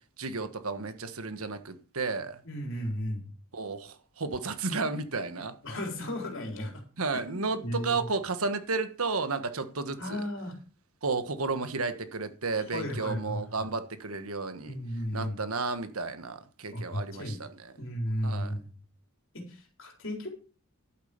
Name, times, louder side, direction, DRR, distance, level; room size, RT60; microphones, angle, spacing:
voice 1, 0.2-2.4 3.5-5.5 7.0-10.2 11.0-14.8 15.1-17.7 18.2-18.5, right 4 dB, 80° right, 1.4 m, -32 dB
voice 2, 2.4-3.3 5.6-6.8 7.1-8.0 10.0-10.5 12.5-13.7 14.7-15.4 16.7-17.4 17.8-18.6 19.3-20.3, equal, 60° left, 4.2 m, -34 dB
11.5 x 8.7 x 5.3 m
head